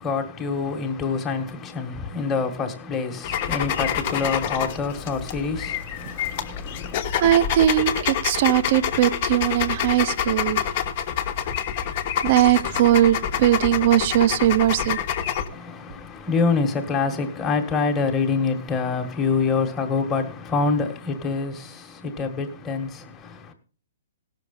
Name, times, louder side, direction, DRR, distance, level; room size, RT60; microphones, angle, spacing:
voice 1, 0.0-6.9 15.5-21.8 22.1-22.9, left 4 dB, 15° left, 1.5 m, -26 dB
sound 1, 3.2-15.5, left 9 dB, 35° left, 1.2 m, -27 dB
voice 2, 7.2-10.6 12.2-15.0, right 13 dB, 40° right, 0.7 m, -20 dB
17.0 x 6.5 x 5.4 m
hypercardioid pair, 160°, 0 cm